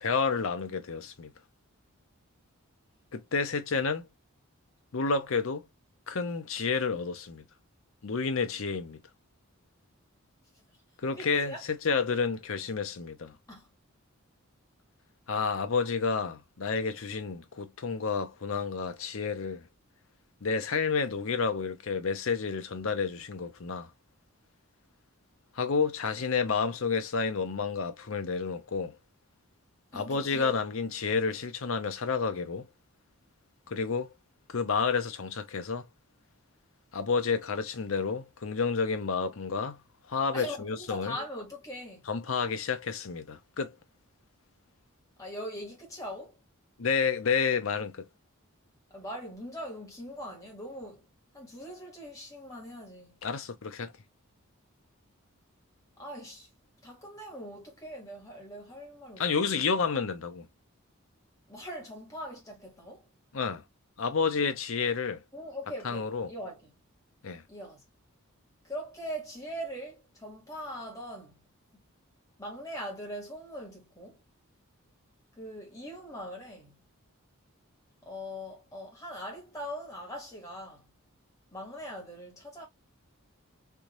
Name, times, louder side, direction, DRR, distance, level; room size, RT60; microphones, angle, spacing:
voice 1, 0.0-1.3 3.1-4.0 4.9-5.6 6.1-7.4 8.0-9.0 11.0-13.4 15.3-19.7 20.4-23.9 25.6-29.0 29.9-32.7 33.7-34.1 34.5-35.8 36.9-39.8 40.1-41.2 42.1-43.7 46.8-48.1 53.2-53.9 59.2-60.5 63.3-63.6 64.0-65.2 65.8-66.3 67.2-67.4, left 5 dB, 70° left, 0.6 m, -30 dB
voice 2, 11.0-11.6 13.5-13.7 29.9-30.6 40.3-42.1 45.2-46.4 48.9-51.0 51.3-53.1 56.0-56.5 56.8-59.5 61.5-63.1 65.3-66.7 67.5-67.8 68.6-71.4 71.7-71.8 72.4-74.2 75.3-76.8 78.0-80.9 81.5-82.7, equal, 15° left, 1.5 m, -41 dB
3.4 x 2.6 x 2.9 m
head